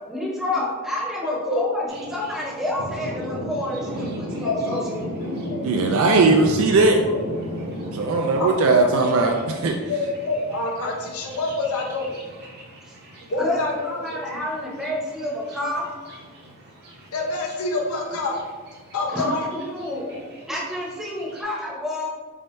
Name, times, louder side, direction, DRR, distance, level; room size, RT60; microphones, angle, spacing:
voice 1, 0.1-5.4 12.8-12.9 13.4-15.9 19.1-20.2 20.5-22.1, left 1 dB, ahead, -4 dB, 0.8 m, -29 dB
voice 2, 1.2-1.6 4.4-6.0 7.0-7.2 8.4-8.5 9.0-9.1 9.9-12.2 13.3-14.4 17.1-18.4 18.9-20.2, left 2 dB, 75° left, 0 dB, 0.7 m, -28 dB
Thunder, 1.9-21.4, equal, 45° right, 0.8 m, -36 dB
voice 3, 5.6-7.0 7.9-9.3 9.6-9.8, right 3 dB, 65° right, 2 dB, 0.4 m, -18 dB
4.3 x 3.5 x 2.6 m, 1.4 s
head